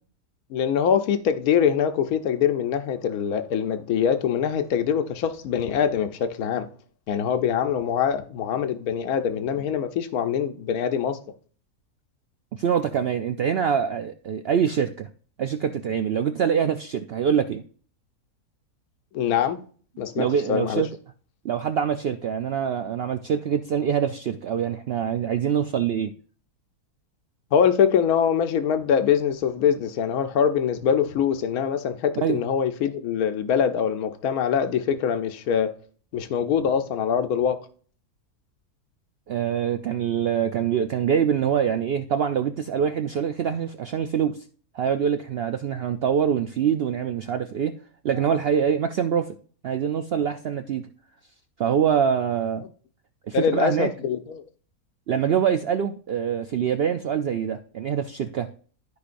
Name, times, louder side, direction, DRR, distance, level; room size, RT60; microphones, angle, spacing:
voice 1, 0.5-6.7 7.1-11.2 19.1-19.6 20.0-20.8 27.5-35.7 36.1-37.6 53.3-54.4, left 8 dB, 70° left, 1.3 m, -23 dB
voice 2, 12.5-15.1 15.4-17.6 20.1-20.9 21.4-26.1 32.2-32.4 39.3-44.3 44.7-47.7 48.0-49.3 49.6-50.9 51.6-52.6 53.3-53.9 55.1-58.5, right 8 dB, 85° right, 0.5 m, -24 dB
13.5 x 4.9 x 2.6 m
omnidirectional pair, 1.6 m